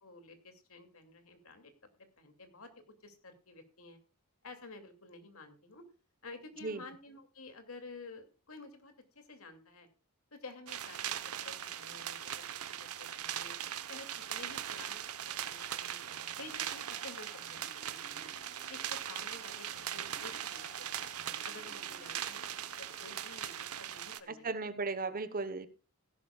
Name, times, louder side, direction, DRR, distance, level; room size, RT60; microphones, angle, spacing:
voice 1, 0.0-1.7 2.0-2.7 3.0-4.0 4.4-5.9 6.2-9.9 10.3-11.1 11.4-12.5 13.0-13.5 13.9-16.0 16.3-18.3 18.7-20.7 21.0-21.1 21.4-24.7, left 3 dB, 65° left, 7 dB, 2.6 m, -51 dB
sound 1, 10.7-24.2, right 10 dB, 80° right, 1.0 m, -40 dB
sound 2, 16.0-23.4, left 2 dB, 50° left, 3.6 m, -58 dB
voice 2, 24.3-25.7, right 3 dB, 40° right, 13 dB, 1.1 m, -36 dB
16.5 x 11.5 x 2.4 m, 0.33 s
head